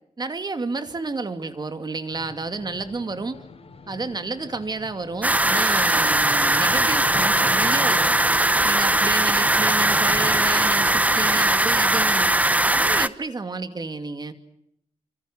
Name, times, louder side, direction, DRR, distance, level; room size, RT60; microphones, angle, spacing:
voice 1, 0.2-3.4 3.9-8.1 8.6-12.3 12.7-14.3, right 3 dB, 35° right, 9 dB, 2.5 m, -31 dB
sound 1, 2.1-11.5, left 4 dB, 50° left, 4.4 m, -40 dB
sound 2, 5.2-13.1, right 1 dB, 10° right, 0.9 m, -20 dB
28.5 x 26.5 x 6.4 m, 0.77 s
wide cardioid pair, 140°, 13 cm